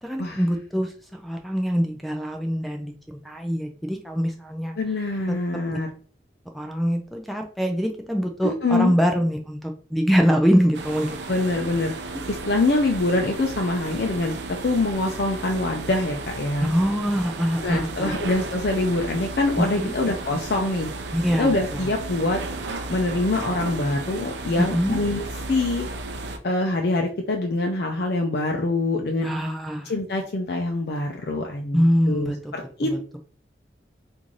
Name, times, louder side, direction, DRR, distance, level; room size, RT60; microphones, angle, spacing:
voice 1, 0.0-4.7 6.5-11.3 16.6-18.2 19.6-19.9 21.1-21.9 24.7-25.0 29.2-30.0 31.7-32.5 32.8-33.2, equal, ahead, 4 dB, 0.3 m, -24 dB
voice 2, 4.8-5.9 8.4-8.9 11.3-11.9 12.3-16.7 17.6-20.9 21.4-22.4 22.9-25.9 26.4-29.3 29.9-32.9, left 2 dB, 65° left, 2 dB, 0.5 m, -24 dB
sound 1, 10.7-26.4, right 3 dB, 80° right, 0.5 m, -34 dB
3.1 x 2.6 x 3.7 m, 0.42 s
head